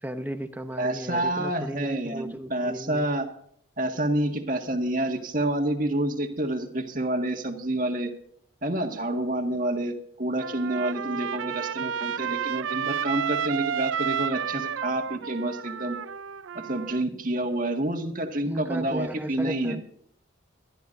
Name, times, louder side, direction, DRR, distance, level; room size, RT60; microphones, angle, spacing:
voice 1, 0.0-3.1 18.5-19.8, equal, 10° right, 8 dB, 0.9 m, -35 dB
voice 2, 0.8-3.3 3.8-8.1 8.6-16.0 16.5-19.8, right 1 dB, 45° right, 4 dB, 1.8 m, -28 dB
Trumpet, 10.4-17.0, right 8 dB, 80° right, 0.4 m, -31 dB
22.0 x 13.0 x 2.7 m, 0.66 s
head